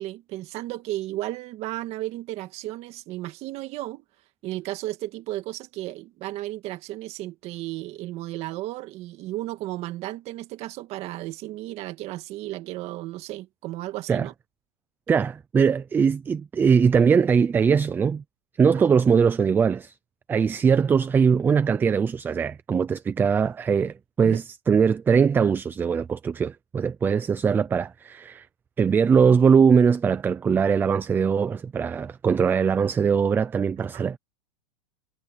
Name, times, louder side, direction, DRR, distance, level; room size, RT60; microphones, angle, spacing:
voice 1, 0.0-4.0 4.4-14.3 18.8-18.9 24.2-24.4 33.9-34.1, right 16 dB, 35° right, 1.8 m, -34 dB
voice 2, 15.1-18.2 18.6-19.9 20.3-28.5 28.8-34.2, right 6 dB, 10° right, 0.5 m, -21 dB
supercardioid pair, 155°, 19 cm